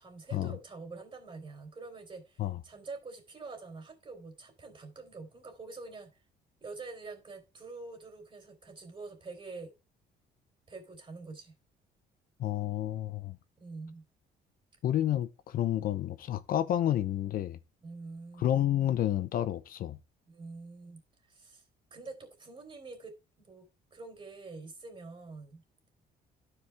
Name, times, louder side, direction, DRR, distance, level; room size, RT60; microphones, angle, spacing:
voice 1, 0.0-6.1 6.6-9.7 10.7-11.5 13.6-14.0 17.8-18.6 20.3-21.0 21.3-21.6 21.9-25.6, right 3 dB, 30° right, 3.4 m, -46 dB
voice 2, 12.4-13.4 14.8-17.6 18.4-20.0, left 11 dB, 60° left, 0.7 m, -30 dB
12.0 x 4.9 x 3.4 m
cardioid pair, 110°, 17 cm